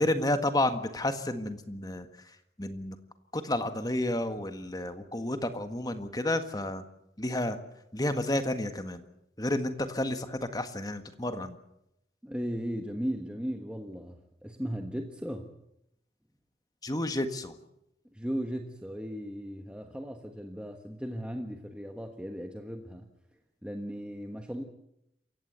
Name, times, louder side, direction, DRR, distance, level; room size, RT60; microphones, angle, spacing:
voice 1, 0.0-3.0 3.3-6.8 7.2-7.6 7.9-9.0 9.4-11.6 16.8-17.5, left 1 dB, 20° left, 9 dB, 1.6 m, -31 dB
voice 2, 12.2-15.5 18.1-23.1 23.6-24.6, equal, 5° right, 4 dB, 1.3 m, -36 dB
27.5 x 15.5 x 8.1 m, 0.82 s
head